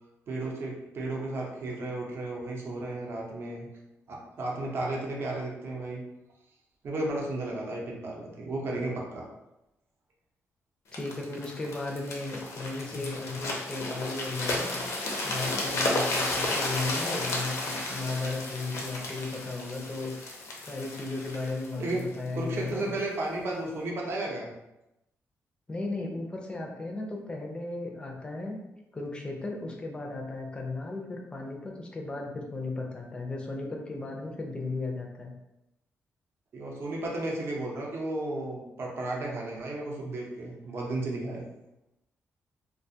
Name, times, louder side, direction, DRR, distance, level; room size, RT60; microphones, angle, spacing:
voice 1, 0.3-3.7 4.1-6.0 6.8-9.2 21.7-22.0 22.3-24.5 36.5-41.4, right 2 dB, 55° right, -2 dB, 0.6 m, -33 dB
sound 1, 10.9-22.8 23.4-23.6, left 2 dB, 75° left, 0.5 m, -33 dB
voice 2, 10.9-14.8 15.2-20.1 20.6-22.9 25.7-28.6 28.9-35.3, left 3 dB, 20° left, 1 dB, 0.4 m, -35 dB
2.4 x 2.2 x 2.7 m, 0.91 s
cardioid pair, 135°, 5 cm